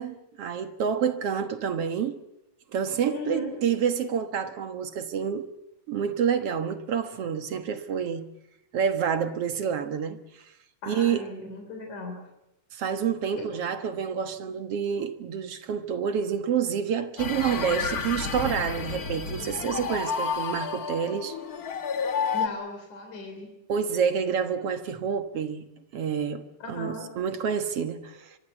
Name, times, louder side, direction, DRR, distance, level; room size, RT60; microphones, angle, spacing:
voice 1, 0.0-2.2 2.7-5.5 5.9-8.3 8.7-10.2 10.9-11.2 12.7-21.3 23.7-25.6 25.9-26.4 26.7-28.4, right 7 dB, 60° right, 2.2 m, -28 dB
voice 2, 3.1-3.6 10.8-12.2 13.4-13.5 22.3-23.5 26.6-27.1, left 2 dB, 90° left, 4.8 m, -37 dB
sound 1, 17.2-22.5, left 6 dB, 40° left, 1.4 m, -30 dB
24.5 x 23.5 x 8.2 m
omnidirectional pair, 3.3 m